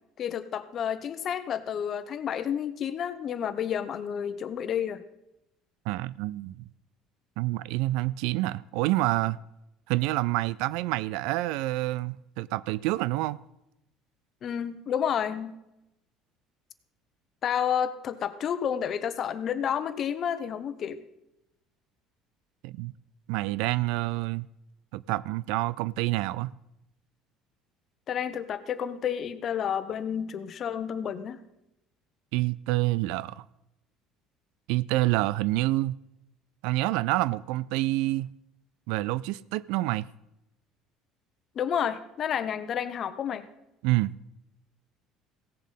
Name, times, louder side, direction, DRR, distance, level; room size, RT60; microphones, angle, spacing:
voice 1, 0.2-5.0 14.4-15.5 17.4-21.0 28.1-31.4 41.5-43.5, left 8 dB, 50° left, 0.9 m, -30 dB
voice 2, 5.9-6.7 7.4-9.4 9.9-13.4 22.6-22.9 23.3-24.5 24.9-26.5 32.3-33.4 34.7-36.0 36.6-38.3 38.9-40.1 43.8-44.1, right 18 dB, 80° right, 0.3 m, -27 dB
16.0 x 7.3 x 5.5 m
supercardioid pair, 90°, 0 cm